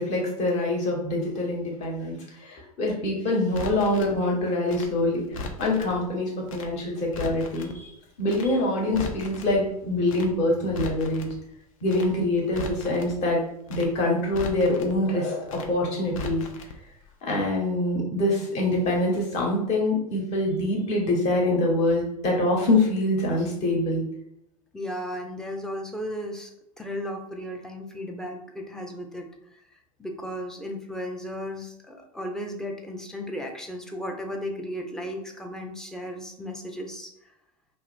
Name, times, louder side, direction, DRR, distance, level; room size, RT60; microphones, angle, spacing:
voice 1, 0.0-2.2 2.4-5.2 5.6-7.9 8.2-11.3 11.8-13.4 13.7-16.4 17.2-24.0, left 1 dB, 35° left, -1 dB, 1.1 m, -25 dB
Crackle, 3.5-4.1 4.7-5.9 6.5-6.7 7.0-7.7 8.3-8.5 8.8-9.5 10.1-10.3 10.6-11.3 11.9-12.1 12.4-13.1 13.7-13.9 14.2-14.9 15.5-15.7 16.0-16.7 17.0-17.1, left 3 dB, 60° left, 0.5 m, -37 dB
voice 2, 24.7-26.5 26.8-29.6 30.0-37.1, equal, 5° left, 2 dB, 0.4 m, -35 dB
2.7 x 2.3 x 3.4 m, 0.77 s
figure-of-eight pair, 80°, 20 cm